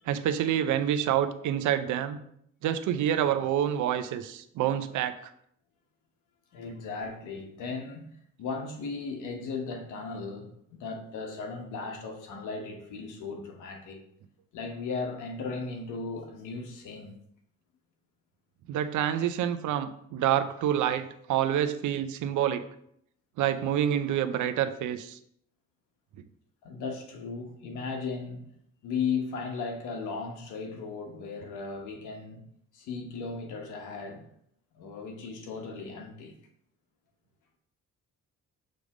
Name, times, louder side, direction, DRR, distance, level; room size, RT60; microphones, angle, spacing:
voice 1, 0.1-2.2 2.6-5.1 18.7-22.6 23.4-25.2, right 10 dB, 80° right, 0.6 m, -27 dB
voice 2, 6.5-8.0 8.4-14.0 14.5-17.1 26.6-28.5 28.8-32.4 32.7-34.3 34.7-36.3, left 4 dB, 90° left, 1.2 m, -36 dB
6.5 x 3.4 x 4.8 m
cardioid pair, 90°, 30 cm